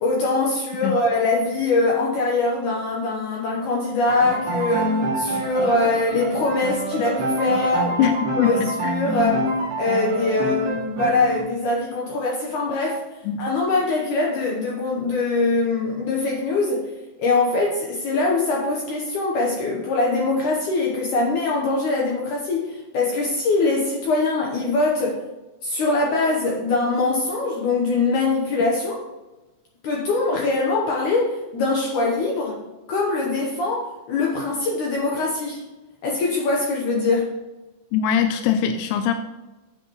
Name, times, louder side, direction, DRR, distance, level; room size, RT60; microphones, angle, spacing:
voice 1, 0.0-9.4 9.8-13.0 13.4-16.9 17.2-25.2 25.6-29.0 29.8-32.6 32.9-35.6 36.0-37.4, left 3 dB, 70° left, -2 dB, 1.9 m, -23 dB
Piano, 4.1-11.4, right 1 dB, 50° right, 2.7 m, -26 dB
voice 2, 8.0-9.0 13.3-13.4 37.9-39.1, left 8 dB, 85° left, 7 dB, 2.7 m, -22 dB
9.9 x 7.8 x 3.0 m, 1.1 s
omnidirectional pair, 4.8 m